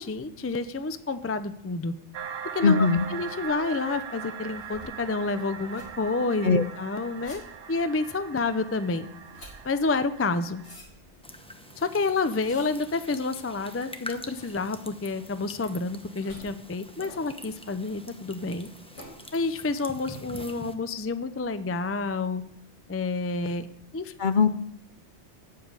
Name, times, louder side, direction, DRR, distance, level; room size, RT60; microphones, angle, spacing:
voice 1, 0.0-1.9 2.5-7.4 7.7-9.1 9.6-10.6 11.8-18.7 19.3-22.4 22.9-23.7 23.9-24.1, left 3 dB, 20° left, 11 dB, 0.3 m, -29 dB
sound 1, 2.1-10.8, right 7 dB, 65° right, 0.8 m, -41 dB
voice 2, 2.6-3.1 6.4-6.6 24.2-24.5, left 5 dB, 50° left, 11 dB, 0.7 m, -20 dB
sound 2, 2.8-20.4, equal, 90° left, 4.4 m, -52 dB
sound 3, 11.2-20.7, equal, 5° left, 0.9 m, -45 dB
8.6 x 7.3 x 8.8 m, 0.72 s
omnidirectional pair, 1.2 m